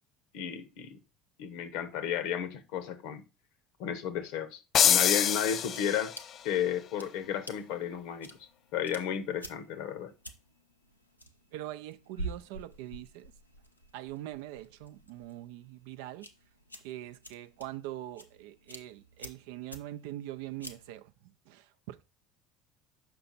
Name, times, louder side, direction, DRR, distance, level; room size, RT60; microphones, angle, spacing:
voice 1, 0.3-1.0 1.4-3.2 3.8-6.2 6.4-8.4 8.7-10.1, left 9 dB, 60° left, 0.8 m, -33 dB
sound 1, 4.7-6.4, left 9 dB, 40° left, 0.3 m, -25 dB
sound 2, 5.5-21.0, right 2 dB, 90° left, 0.6 m, -49 dB
voice 2, 11.5-13.3 13.9-16.3 16.8-22.0, right 14 dB, 60° right, 0.4 m, -43 dB
6.8 x 5.8 x 4.0 m
figure-of-eight pair, 65°, 0 cm